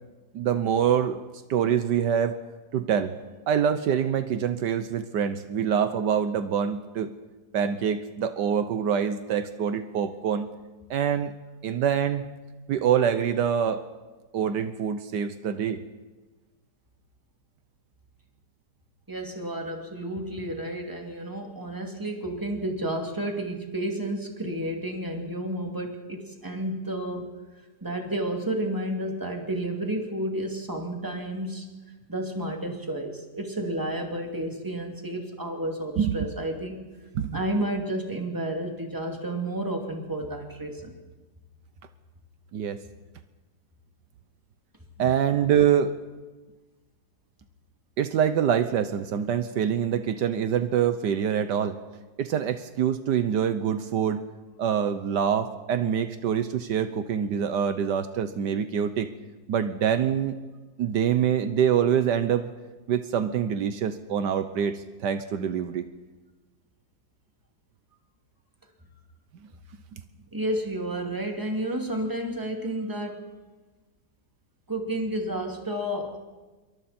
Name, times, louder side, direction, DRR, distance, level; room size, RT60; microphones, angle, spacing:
voice 1, 0.3-1.2 1.5-2.4 2.7-3.1 3.5-7.1 7.5-10.5 10.9-11.3 11.6-12.3 12.7-13.8 14.3-15.8 36.0-36.2 37.1-37.4 42.5-42.8 45.0-45.9 48.0-51.8 52.2-54.2 54.6-59.1 59.5-60.4 60.8-62.5 62.9-65.9, right 8 dB, 75° right, 10 dB, 1.5 m, -25 dB
voice 2, 19.1-27.3 27.8-31.7 32.1-36.8 37.3-40.9 70.3-73.2 74.7-76.2, right 1 dB, 10° right, 1 dB, 2.6 m, -31 dB
27.0 x 23.0 x 4.3 m, 1.2 s
omnidirectional pair, 1.9 m